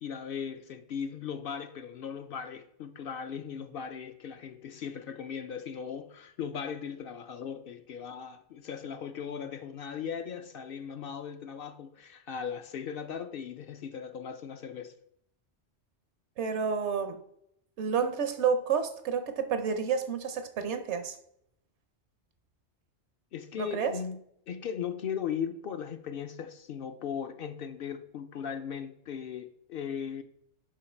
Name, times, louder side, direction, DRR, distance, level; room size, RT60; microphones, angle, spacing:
voice 1, 0.0-14.9 23.3-24.2 24.5-30.2, left 7 dB, 60° left, 0.6 m, -38 dB
voice 2, 16.4-17.2 17.8-21.2 23.6-23.9, right 6 dB, 75° right, 1.0 m, -30 dB
6.4 x 5.6 x 4.3 m
omnidirectional pair, 1.2 m